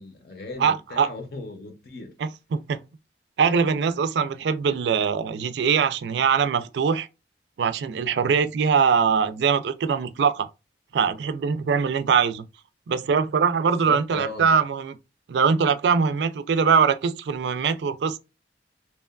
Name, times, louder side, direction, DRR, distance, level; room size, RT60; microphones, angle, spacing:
voice 1, 0.0-2.2 13.8-14.5, left 3 dB, 55° left, 0.6 m, -37 dB
voice 2, 0.6-1.1 2.5-2.8 3.4-7.1 7.6-10.5 10.9-12.4 12.9-14.9 15.3-18.2, right 6 dB, 70° right, 0.3 m, -22 dB
2.8 x 2.2 x 2.2 m
head